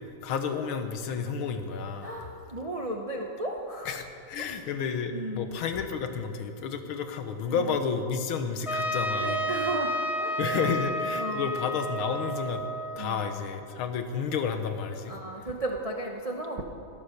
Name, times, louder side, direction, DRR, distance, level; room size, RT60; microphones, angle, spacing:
voice 1, 0.2-2.1 3.9-9.5 10.4-12.7 13.0-15.2, left 6 dB, 85° left, 8 dB, 1.8 m, -31 dB
voice 2, 2.0-4.0 4.4-4.5 5.1-5.4 7.4-7.8 9.2-9.9 10.2-10.7 11.1-11.5 13.0-13.3 15.1-16.6, right 1 dB, 40° right, 1 dB, 0.4 m, -35 dB
Trumpet, 8.7-13.5, right 1 dB, 55° left, 0.3 m, -31 dB
13.0 x 12.5 x 6.5 m, 2.5 s
omnidirectional pair, 2.2 m